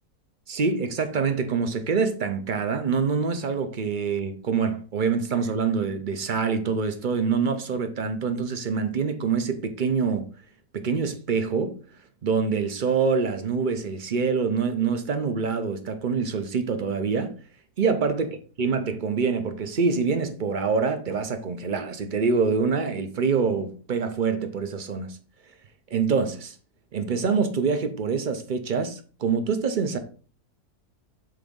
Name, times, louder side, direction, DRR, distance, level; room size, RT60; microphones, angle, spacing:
voice 1, 0.5-10.3 10.7-11.7 12.2-17.3 17.8-18.3 18.6-25.2 25.9-26.5 26.9-30.0, right 5 dB, 45° right, 0.6 m, -25 dB
7.7 x 3.9 x 3.6 m
omnidirectional pair, 1.6 m